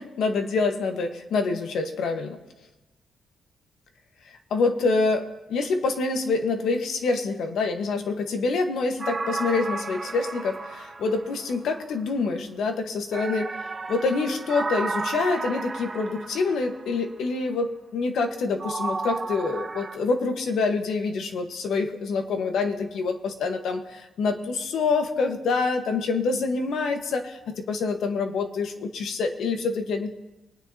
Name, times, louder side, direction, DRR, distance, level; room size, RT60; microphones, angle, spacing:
voice 1, 0.0-2.4 4.2-13.5 13.9-30.1, left 4 dB, 80° left, 5 dB, 1.3 m, -26 dB
sound 1, 9.0-11.8 13.1-16.9 18.6-19.9, right 3 dB, 35° right, 2.0 m, -33 dB
22.5 x 9.3 x 2.8 m, 1.0 s
cardioid pair, 125°, 0 cm